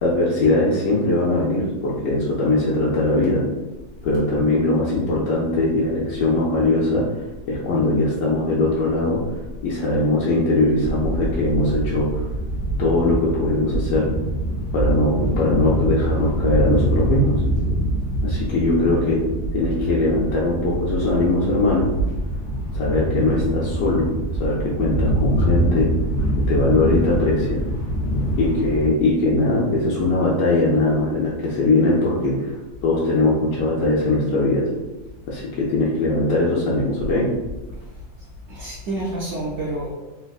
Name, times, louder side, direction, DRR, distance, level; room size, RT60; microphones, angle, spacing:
voice 1, 0.0-3.4 4.0-7.0 7.5-9.2 9.6-12.3 12.8-14.1 14.7-17.4 18.2-19.2 19.5-21.9 22.7-24.1 24.4-25.9 26.5-27.6 28.4-32.5 32.8-34.7 35.3-37.3, left 2 dB, 65° left, -6 dB, 0.9 m, -20 dB
sound 1, 10.8-28.9, right 1 dB, 80° left, 1.2 m, -24 dB
voice 2, 18.6-18.9 38.5-39.9, right 2 dB, 65° right, -5 dB, 0.7 m, -28 dB
3.4 x 2.5 x 2.3 m, 1.1 s
omnidirectional pair, 1.7 m